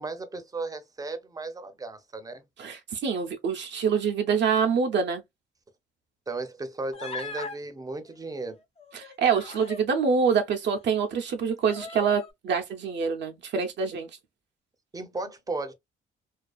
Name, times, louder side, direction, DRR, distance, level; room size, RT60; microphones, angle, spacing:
voice 1, 0.0-2.4 6.3-8.6 14.9-15.7, right 3 dB, 20° right, 0.6 m, -35 dB
voice 2, 2.6-5.2 8.9-14.1, right 6 dB, 60° right, 0.5 m, -26 dB
Human voice, 6.9-7.6 8.8-9.9 10.7-10.8 11.6-12.3, left 3 dB, 30° left, 0.5 m, -39 dB
2.4 x 2.3 x 2.3 m
cardioid pair, 90°, 20 cm